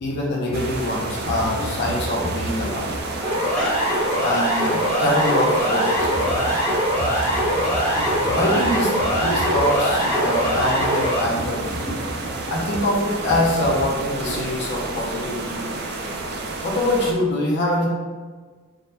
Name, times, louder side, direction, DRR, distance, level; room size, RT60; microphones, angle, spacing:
voice 1, 0.0-2.9 4.2-6.1 8.3-8.9 9.2-11.7 12.5-15.7 16.6-17.9, left 1 dB, 50° left, -3 dB, 0.5 m, -24 dB
sound 1, 0.5-17.1, right 3 dB, 50° right, 0.3 m, -31 dB
voice 2, 1.0-1.4 2.2-2.4 3.6-3.7 6.3-8.5 9.0-9.2 10.0-10.6 11.3-11.4 11.8-12.3 14.3-14.4 14.7-14.8 15.5-15.6, equal, 5° left, -8 dB, 0.7 m, -32 dB
Siren, 3.2-11.2, equal, 30° right, 0.9 m, -22 dB
3.6 x 2.1 x 2.7 m, 1.5 s
head